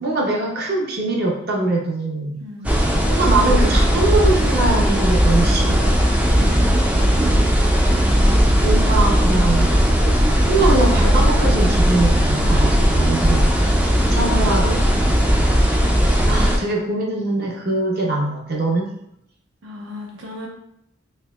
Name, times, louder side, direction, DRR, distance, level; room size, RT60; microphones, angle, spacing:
voice 1, 0.0-2.4 3.1-5.8 7.9-8.0 8.6-9.7 10.2-13.6 14.1-14.8 16.3-18.9, right 2 dB, 50° right, -1 dB, 0.7 m, -22 dB
voice 2, 2.4-2.7 6.2-7.5 19.6-20.5, right 1 dB, 80° right, -1 dB, 0.9 m, -34 dB
sound 1, 2.6-16.6, equal, 5° right, 0.3 m, -17 dB
4.4 x 2.8 x 2.3 m, 0.76 s
head